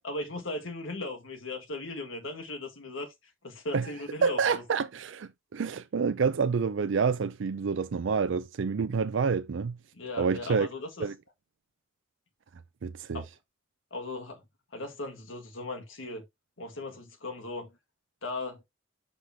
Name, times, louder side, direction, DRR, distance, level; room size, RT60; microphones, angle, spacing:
voice 1, 0.0-3.1 3.4-4.6 9.9-11.0 13.1-13.2 13.9-14.4 14.7-16.2 16.6-17.7 18.2-18.6, left 2 dB, 90° left, 1.7 m, -37 dB
voice 2, 4.2-9.8 10.2-10.7 11.0-11.1 12.8-13.2, right 5 dB, 75° right, 0.4 m, -28 dB
5.8 x 5.0 x 3.5 m
head